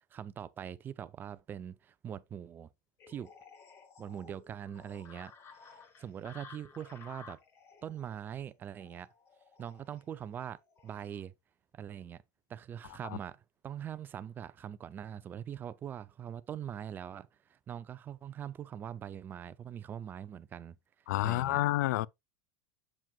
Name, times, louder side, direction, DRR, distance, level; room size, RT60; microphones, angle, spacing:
voice 1, 0.1-2.7 3.1-3.3 4.0-5.3 5.6-7.4 7.8-9.1 9.6-11.3 11.7-12.2 12.5-20.8 21.2-21.6, right 9 dB, 20° right, 0.5 m, -42 dB
sound 1, 3.0-11.2, left 5 dB, 30° left, 1.4 m, -55 dB
voice 2, 21.1-22.1, left 16 dB, 75° left, 0.4 m, -29 dB
7.5 x 7.5 x 2.3 m
supercardioid pair, 150°, 9 cm